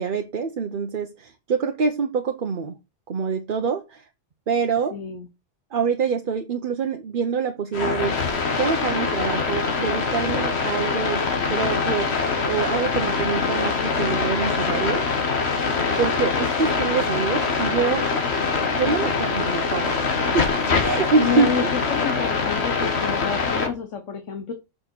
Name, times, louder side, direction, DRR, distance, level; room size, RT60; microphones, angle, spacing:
voice 1, 0.0-2.7 3.1-4.1 4.5-4.9 5.7-8.2 8.6-11.2 11.5-15.0 16.0-18.0 18.7-20.5 20.8-21.7, right 5 dB, 50° right, 5 dB, 0.9 m, -25 dB
voice 2, 4.9-5.3 21.2-24.5, left 6 dB, 80° left, 7 dB, 1.4 m, -29 dB
sound 1, 7.7-23.7, left 4 dB, 60° left, 1.6 m, -24 dB
7.2 x 5.1 x 4.5 m, 0.25 s
omnidirectional pair, 1.2 m